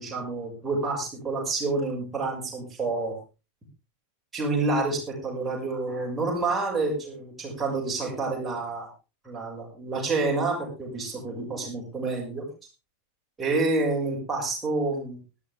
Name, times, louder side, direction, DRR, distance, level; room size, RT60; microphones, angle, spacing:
voice 1, 0.0-3.2 4.3-8.9 9.2-12.5 13.4-15.2, right 3 dB, 10° right, -4 dB, 6.6 m, -28 dB
18.5 x 11.0 x 3.6 m, 0.31 s
figure-of-eight pair, 90°, 0 cm